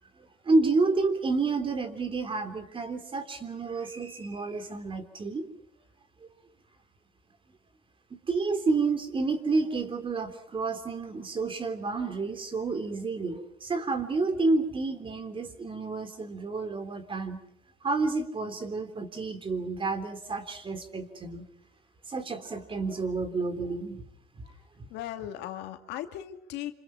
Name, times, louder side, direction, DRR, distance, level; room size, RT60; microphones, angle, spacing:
voice 1, 0.4-5.5 8.1-17.4 17.8-21.4 22.1-24.0 24.4-24.5, right 3 dB, 30° right, 9 dB, 3.4 m, -30 dB
voice 2, 24.9-26.7, left 12 dB, 90° left, 7 dB, 2.3 m, -37 dB
27.5 x 27.0 x 5.8 m, 0.71 s
cardioid pair, 110°, 17 cm